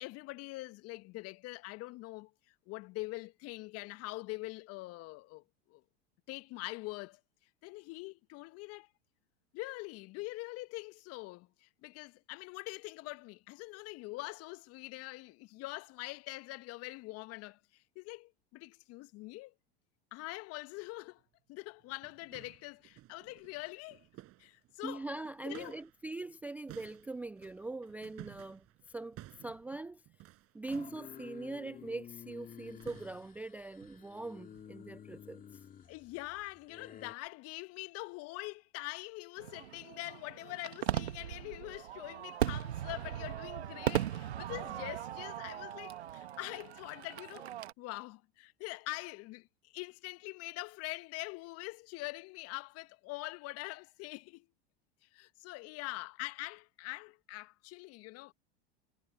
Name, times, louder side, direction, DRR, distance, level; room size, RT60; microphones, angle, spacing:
voice 1, 0.0-2.3 2.7-5.4 5.7-5.8 6.3-7.2 7.6-8.9 9.5-19.5 20.1-21.2 21.5-24.0 24.4-25.0 25.4-25.8 35.9-47.5 47.8-54.5 55.1-58.3, left 22 dB, 50° left, 1.6 m, -44 dB
sound 1, 21.2-21.3 21.8-26.0 26.3-31.1 32.3-32.5 32.8-33.4 33.8-34.1 34.5-34.8 35.1-35.3 35.8-36.0 36.5-36.6 37.3-37.4, right 16 dB, 45° right, 6.6 m, -56 dB
voice 2, 24.8-30.0 30.5-35.4, right 2 dB, 5° right, 0.4 m, -42 dB
sound 2, 30.7-37.1, left 8 dB, 25° left, 2.3 m, -52 dB
Fireworks, 39.4-47.7, right 11 dB, 75° right, 1.8 m, -38 dB
hypercardioid pair, 90°, 32 cm